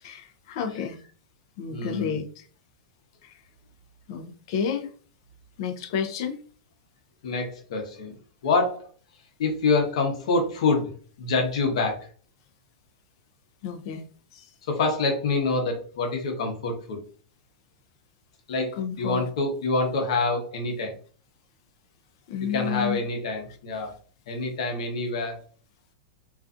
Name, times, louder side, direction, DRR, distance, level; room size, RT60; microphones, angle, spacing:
voice 1, 0.0-1.0 1.6-2.4 3.2-3.3 4.1-4.9 5.6-6.4 13.6-14.0 14.3-14.5 18.8-19.2 22.3-23.0, left 7 dB, 45° left, 0.4 m, -30 dB
voice 2, 1.7-2.2 7.2-8.9 9.4-10.9 11.2-12.1 14.7-17.0 18.5-20.9 22.4-23.9 24.3-25.4, left 3 dB, 65° left, 0.8 m, -26 dB
2.5 x 2.3 x 2.4 m
supercardioid pair, 175°, 4 cm